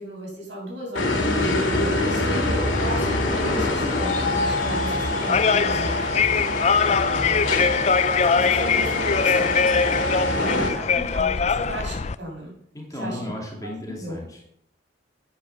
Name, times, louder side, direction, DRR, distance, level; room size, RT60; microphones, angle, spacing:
voice 1, 0.0-6.1 6.8-7.5 8.3-9.6 10.4-12.5 12.9-13.3 13.6-14.2, equal, 70° right, -2 dB, 7.0 m, -35 dB
sound 1, 0.9-10.7, left 1 dB, 85° left, 3.3 m, -25 dB
sound 2, 2.7-12.1, left 6 dB, 35° left, 0.4 m, -23 dB
voice 2, 10.1-11.1 12.7-14.5, left 1 dB, 20° left, 0 dB, 2.6 m, -36 dB
10.0 x 10.0 x 6.9 m, 0.73 s
head